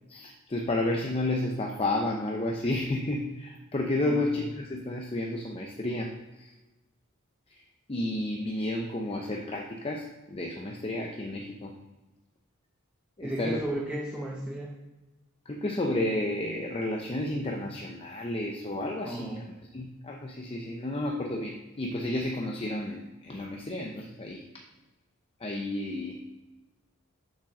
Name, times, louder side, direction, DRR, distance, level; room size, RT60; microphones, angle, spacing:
voice 1, 0.1-6.5 7.5-7.6 7.9-11.7 13.2-13.7 15.5-19.4 19.7-24.5 25.4-26.2, left 1 dB, 25° left, 1 dB, 0.6 m, -31 dB
voice 2, 13.2-14.7 19.0-19.4, right 1 dB, 5° right, -3 dB, 1.0 m, -34 dB
7.2 x 5.1 x 6.3 m, 1.1 s
head